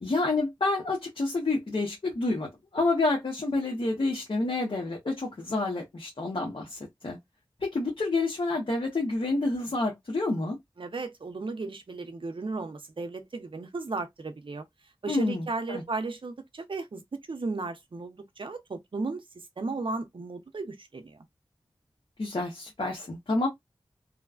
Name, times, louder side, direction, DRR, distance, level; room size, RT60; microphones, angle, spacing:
voice 1, 0.0-7.2 7.6-10.6 15.1-15.8 22.2-23.5, left 2 dB, 70° left, 1.1 m, -28 dB
voice 2, 10.8-14.6 15.0-21.2, right 3 dB, 65° right, 0.6 m, -35 dB
3.1 x 2.1 x 2.4 m
wide cardioid pair, 45°, 9 cm